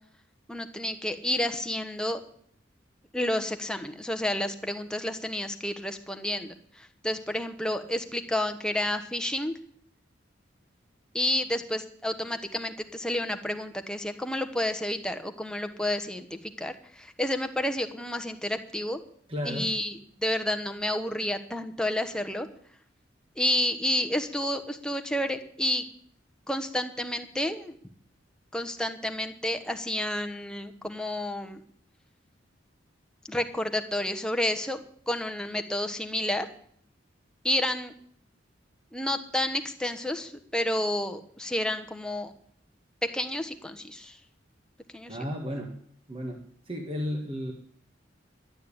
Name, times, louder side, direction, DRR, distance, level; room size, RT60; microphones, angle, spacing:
voice 1, 0.5-2.2 3.1-9.5 11.1-19.0 19.4-22.5 23.4-25.8 26.5-27.8 28.5-31.6 33.3-36.5 37.4-37.9 38.9-42.3 43.0-44.2 44.9-45.2, left 1 dB, 5° left, 6 dB, 1.1 m, -30 dB
voice 2, 19.3-19.7 45.1-45.7 46.1-46.4 46.6-47.5, equal, 30° right, 2 dB, 1.7 m, -33 dB
12.0 x 10.5 x 8.7 m, 0.62 s
head